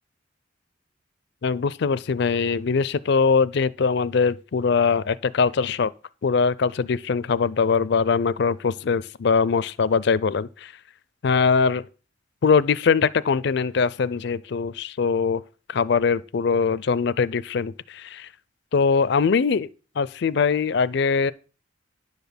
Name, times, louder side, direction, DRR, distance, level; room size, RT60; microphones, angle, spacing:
voice 1, 1.4-5.9 6.2-10.7 11.2-11.8 12.4-15.4 15.7-18.3 18.7-19.7 20.0-21.3, left 5 dB, 60° left, 0.4 m, -22 dB
10.5 x 4.0 x 7.0 m
head